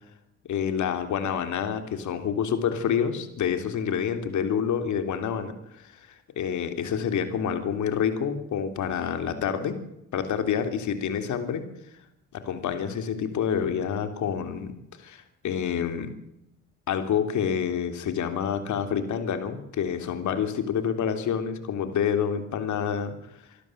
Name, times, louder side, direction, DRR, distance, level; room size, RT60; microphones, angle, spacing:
voice 1, 0.5-9.8 10.1-11.6 12.3-16.1 16.9-23.1, left 8 dB, 75° left, 9 dB, 3.3 m, -28 dB
26.0 x 13.0 x 9.3 m, 0.81 s
cardioid pair, 90°, 30 cm